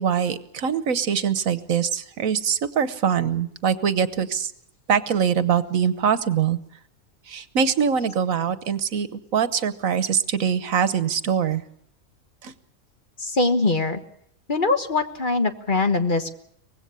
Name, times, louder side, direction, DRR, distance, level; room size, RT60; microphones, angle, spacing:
voice 1, 0.0-4.5 4.9-6.6 7.3-11.6 12.4-12.5, right 7 dB, 85° right, 13 dB, 1.5 m, -23 dB
voice 2, 13.2-14.0 14.5-16.3, left 3 dB, 40° left, 7 dB, 1.5 m, -22 dB
24.0 x 19.5 x 6.9 m, 0.67 s
omnidirectional pair, 1.4 m